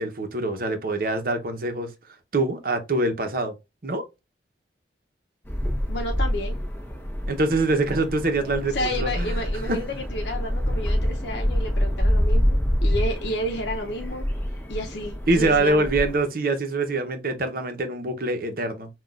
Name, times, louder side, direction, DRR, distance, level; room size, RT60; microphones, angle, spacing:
voice 1, 0.0-1.9 2.3-3.5 3.8-4.0 7.3-9.4 9.7-9.8 15.3-18.9, right 2 dB, 55° right, 0.8 m, -24 dB
sound 1, 5.5-16.2, equal, 10° left, 0.9 m, -26 dB
voice 2, 5.9-6.6 8.7-14.2 14.7-15.9, left 1 dB, 75° left, 0.7 m, -31 dB
5.9 x 2.4 x 2.4 m
head